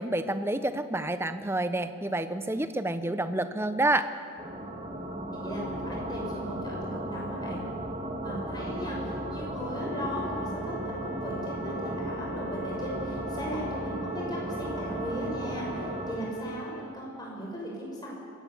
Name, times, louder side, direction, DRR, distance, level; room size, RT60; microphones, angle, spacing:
voice 1, 0.0-4.1, right 1 dB, 10° right, 10 dB, 0.7 m, -28 dB
sound 1, 4.4-16.1, right 1 dB, 30° right, 2.3 m, -35 dB
voice 2, 5.3-7.6 8.2-18.1, equal, 20° left, -3 dB, 5.9 m, -37 dB
sound 2, 9.8-16.8, right 4 dB, 55° left, 5.0 m, -43 dB
23.0 x 16.5 x 7.1 m, 2.3 s
head